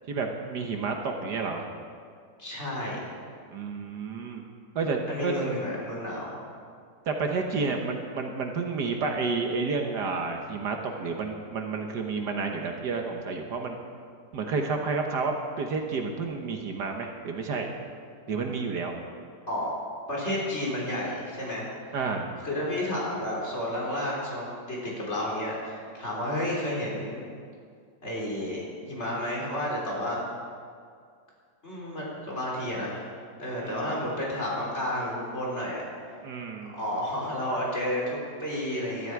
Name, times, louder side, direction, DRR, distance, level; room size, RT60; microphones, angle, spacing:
voice 1, 0.1-1.7 3.5-4.4 4.7-5.5 7.1-13.8 14.3-17.7 18.3-18.9 21.9-22.3 33.6-34.0 36.2-36.8, right 4 dB, 65° right, 3 dB, 1.6 m, -30 dB
voice 2, 2.4-3.1 5.1-6.3 19.5-19.7 20.1-21.7 22.4-27.2 28.0-30.2 31.6-35.8 36.7-39.1, left 1 dB, 35° left, -5 dB, 4.1 m, -31 dB
19.5 x 12.5 x 4.7 m, 2.2 s
omnidirectional pair, 2.0 m